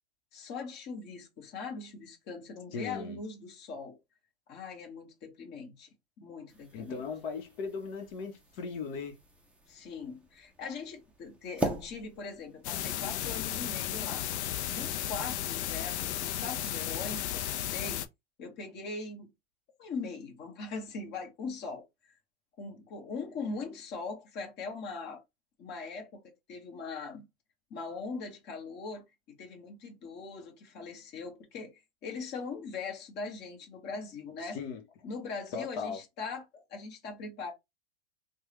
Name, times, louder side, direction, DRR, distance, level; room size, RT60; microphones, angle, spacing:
voice 1, 0.3-4.0 4.5-5.9 6.2-7.1 9.7-14.3 14.7-18.1 18.4-19.3 19.8-21.8 22.6-25.2 25.6-26.2 26.5-27.2 27.7-34.6 35.0-37.5, left 4 dB, 30° left, 1.2 m, -41 dB
voice 2, 2.7-3.2 6.7-9.1 34.5-34.8 35.5-36.0, left 5 dB, 55° left, 1.0 m, -38 dB
Plunger Pop, 6.5-13.7, right 2 dB, 5° right, 0.4 m, -42 dB
sound 1, 12.6-18.1, left 12 dB, 75° left, 0.5 m, -34 dB
3.3 x 2.3 x 3.1 m
hypercardioid pair, 130°, 34 cm